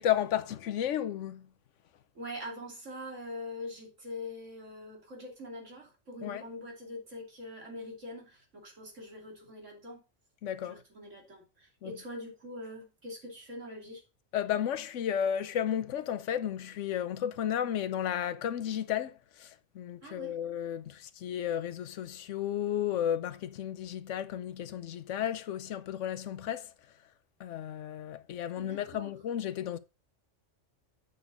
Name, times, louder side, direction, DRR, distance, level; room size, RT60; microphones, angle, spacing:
voice 1, 0.0-1.5 6.2-6.4 10.4-10.8 11.8-11.9 14.3-26.7 27.4-29.8, left 10 dB, 80° left, 1.0 m, -33 dB
voice 2, 2.1-10.0 10.6-14.0 20.0-20.4 28.6-29.1, left 1 dB, 85° right, 3.0 m, -43 dB
7.9 x 6.3 x 3.9 m
omnidirectional pair, 1.2 m